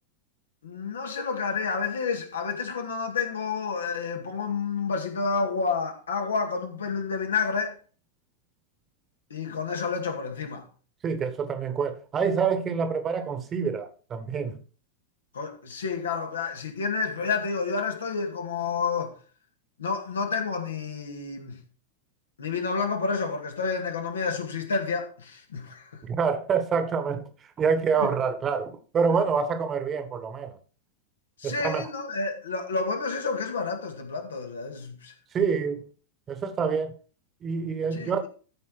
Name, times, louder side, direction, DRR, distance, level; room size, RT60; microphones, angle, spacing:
voice 1, 0.6-7.7 9.3-10.6 15.3-19.1 19.8-21.6 22.4-26.0 28.0-28.1 31.4-35.1 37.9-38.3, left 4 dB, 70° left, 2.1 m, -30 dB
voice 2, 11.0-14.6 26.0-30.6 31.4-31.9 35.3-35.9 36.3-36.9 37.4-38.3, right 6 dB, 25° right, 1.4 m, -27 dB
13.5 x 5.3 x 4.7 m
figure-of-eight pair, 90°, 0 cm